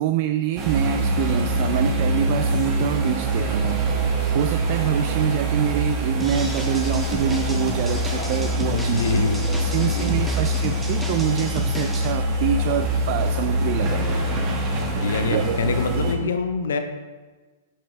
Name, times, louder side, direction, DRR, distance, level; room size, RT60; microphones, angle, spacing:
voice 1, 0.0-9.0 9.6-14.0 15.3-16.3, right 11 dB, 50° right, 9 dB, 0.3 m, -26 dB
sound 1, 0.6-16.1, right 1 dB, 35° right, 1.2 m, -24 dB
sound 2, 6.2-12.1, equal, 10° right, 0.9 m, -34 dB
voice 2, 8.7-9.4 9.8-10.1 15.0-16.8, left 5 dB, 75° left, 8 dB, 0.7 m, -25 dB
7.4 x 5.3 x 3.4 m, 1.3 s
hypercardioid pair, 120°, 0 cm